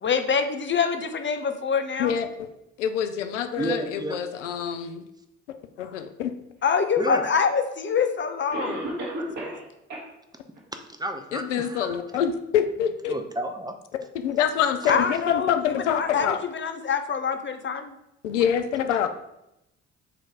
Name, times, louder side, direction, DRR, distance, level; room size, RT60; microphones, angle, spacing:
voice 1, 0.0-2.2 5.8-5.9 6.6-8.9 9.4-9.6 14.9-17.9, left 6 dB, 30° left, 8 dB, 0.8 m, -25 dB
voice 2, 2.0-2.5 2.8-5.0 5.8-6.3 11.3-13.2 14.1-16.4 18.2-19.1, left 8 dB, 85° left, 8 dB, 0.5 m, -26 dB
voice 3, 3.6-4.2 7.0-7.3 10.7-12.0 13.1-13.7 14.8-15.0 18.3-18.4, right 1 dB, 10° right, 6 dB, 0.8 m, -31 dB
Cough, 7.4-7.5 8.5-9.6 9.9-10.0 10.6-10.7 11.2-11.3, right 1 dB, 55° right, 2.1 m, -32 dB
6.8 x 3.2 x 4.7 m, 0.87 s
hypercardioid pair, 50°, 35 cm